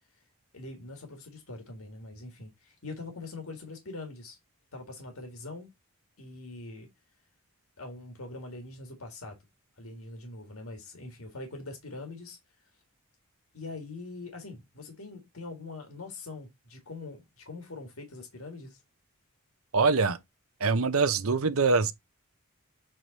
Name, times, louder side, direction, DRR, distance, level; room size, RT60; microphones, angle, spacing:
voice 1, 0.5-4.4 4.7-5.7 6.2-6.9 7.8-9.4 9.8-12.4 13.5-18.8, left 2 dB, 70° left, 1.8 m, -43 dB
voice 2, 19.7-20.2 20.6-21.9, right 4 dB, 70° right, 0.7 m, -24 dB
7.6 x 3.3 x 4.0 m
head